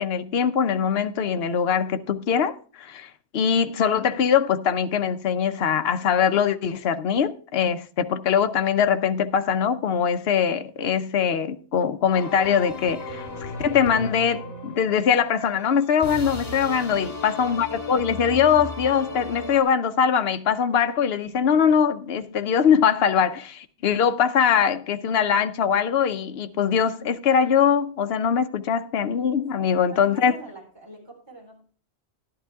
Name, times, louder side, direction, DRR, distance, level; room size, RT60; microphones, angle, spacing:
voice 1, 0.0-30.3, left 7 dB, 65° left, 0.9 m, -22 dB
sound 1, 12.1-19.6, left 3 dB, 35° left, 2.0 m, -36 dB
voice 2, 16.2-16.9 29.0-31.6, right 2 dB, 20° right, 4.0 m, -46 dB
11.0 x 11.0 x 3.5 m
omnidirectional pair, 1.1 m